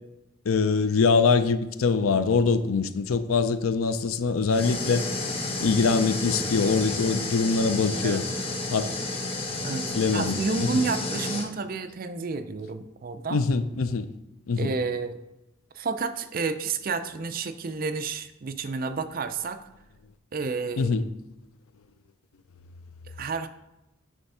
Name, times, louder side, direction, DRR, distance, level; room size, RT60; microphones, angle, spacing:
voice 1, 0.5-5.0 5.6-8.2 8.7-8.9 9.9-10.7 13.3-14.1 14.5-14.7 20.8-21.0, left 4 dB, 85° left, 0.5 m, -23 dB
sound 1, 4.5-11.5, left 2 dB, 30° left, 0.9 m, -31 dB
voice 2, 9.6-13.4 14.6-15.2 15.7-19.6 20.3-20.9 23.2-23.5, right 4 dB, 45° right, 0.5 m, -30 dB
8.7 x 3.4 x 5.5 m
head